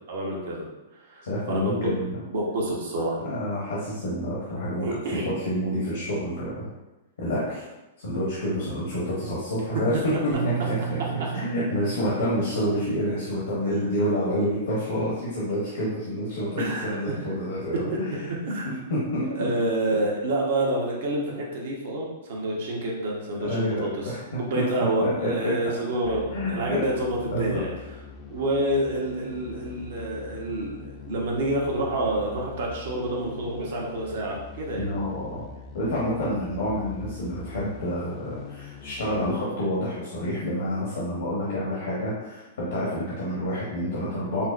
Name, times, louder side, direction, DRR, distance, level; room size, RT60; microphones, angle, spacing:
voice 1, 0.1-0.7 0.9-1.9 2.3-3.2 4.8-5.3 16.6-17.2 17.7-17.8 18.5-18.7 19.4-27.7 28.3-34.9, right 1 dB, 65° right, -2 dB, 1.0 m, -28 dB
voice 2, 1.2-2.2 3.2-6.7 7.2-7.6 8.0-11.0 11.3-18.1 18.6-19.5 19.9-20.0 23.4-24.6 25.0-25.5 26.3-26.8 27.3-27.6 34.8-35.4 35.7-44.4, equal, 75° left, -7 dB, 1.0 m, -28 dB
Bass guitar, 10.3-14.8 15.6-16.6, right 10 dB, 35° right, 0.6 m, -36 dB
sound 1, 26.0-39.3, left 5 dB, 35° left, 0.5 m, -43 dB
5.4 x 2.1 x 2.5 m, 1.1 s
hypercardioid pair, 115°, 0 cm